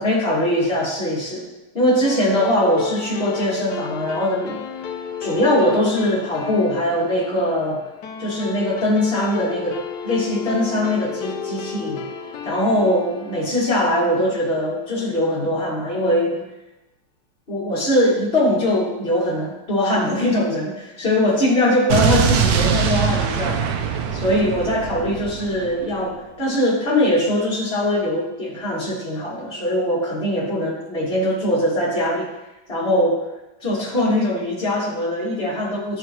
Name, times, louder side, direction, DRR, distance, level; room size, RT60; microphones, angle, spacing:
voice 1, 0.0-1.5 1.7-4.6 5.2-7.8 8.2-9.8 10.0-12.0 12.4-16.4 17.5-23.7 24.1-32.3 32.7-33.2 33.6-36.0, left 1 dB, 30° left, -6 dB, 2.3 m, -21 dB
sound 1, 2.0-14.8, left 6 dB, 65° left, 1.0 m, -33 dB
Explosion, 21.9-25.9, right 7 dB, 85° right, 0.8 m, -22 dB
11.5 x 4.7 x 3.0 m, 0.97 s
omnidirectional pair, 2.3 m